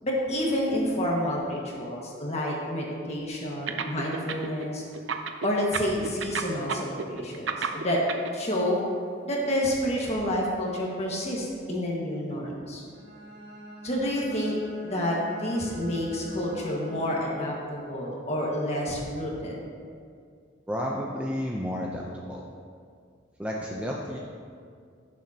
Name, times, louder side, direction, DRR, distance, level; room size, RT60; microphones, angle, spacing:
voice 1, 0.0-4.8 5.4-8.0 8.3-8.8 9.2-12.8 13.8-14.6 14.8-19.6, equal, 30° left, -3 dB, 1.7 m, -29 dB
sound 1, 3.7-4.6 4.9-8.3, right 6 dB, 70° right, 0.6 m, -30 dB
Bowed string instrument, 12.9-17.4, right 1 dB, 55° right, 1.8 m, -43 dB
voice 2, 20.7-22.4 23.4-24.2, equal, 5° right, -3 dB, 0.6 m, -31 dB
16.0 x 7.2 x 2.9 m, 2.2 s
head